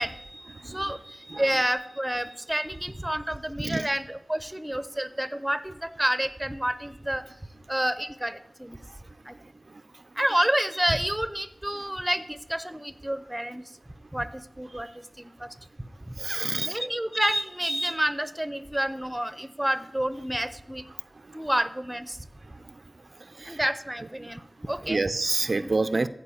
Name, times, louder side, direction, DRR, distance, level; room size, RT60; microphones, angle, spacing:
voice 1, 0.0-7.2 7.7-8.8 9.3-9.4 10.2-13.6 14.1-14.9 15.2-15.5 16.6-20.9 21.3-22.2 23.5-25.0 25.5-25.7, right 1 dB, 10° right, 13 dB, 0.6 m, -29 dB
voice 2, 0.6-0.9 1.3-1.6 3.6-3.9 14.7-14.8 16.2-16.9 21.3-21.4 22.5-22.8 23.2-23.6 24.2-24.3 24.8-26.1, right 3 dB, 60° right, 11 dB, 0.3 m, -29 dB
14.0 x 4.8 x 8.5 m, 0.89 s
wide cardioid pair, 70°, 0 cm